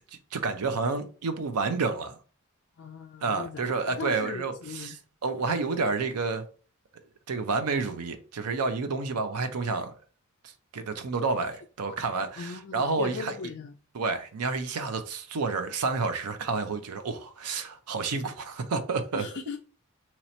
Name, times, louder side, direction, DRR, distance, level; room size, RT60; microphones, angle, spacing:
voice 1, 0.3-2.2 3.2-6.4 7.3-9.9 10.4-13.3 13.9-19.3, right 4 dB, 90° right, 0.5 m, -30 dB
voice 2, 2.8-4.9 12.4-13.7 19.1-19.6, left 5 dB, 50° left, 0.4 m, -38 dB
3.0 x 2.8 x 4.2 m
head